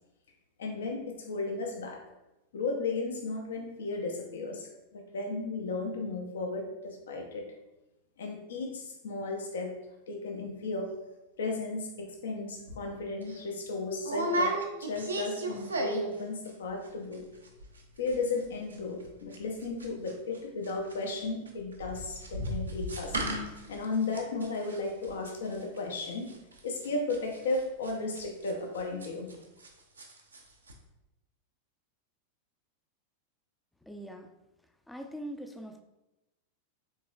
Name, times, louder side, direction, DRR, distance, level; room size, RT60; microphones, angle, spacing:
voice 1, 0.6-2.0 2.5-7.5 8.2-9.7 10.1-10.9 11.4-17.2 18.0-23.2 23.7-26.4 26.6-29.3, left 3 dB, 65° left, 2 dB, 0.6 m, -34 dB
sound 1, 12.7-12.8 13.2-13.4 14.0-16.2 16.5-16.9 17.1-17.2 17.4-17.8 18.1-29.7 30.0-30.4 30.7-30.8, right 1 dB, 75° right, 0.6 m, -35 dB
voice 2, 33.8-34.3 34.9-35.8, right 1 dB, 5° left, 5 dB, 0.4 m, -42 dB
5.5 x 3.7 x 2.3 m, 0.96 s
figure-of-eight pair, 90°, 0 cm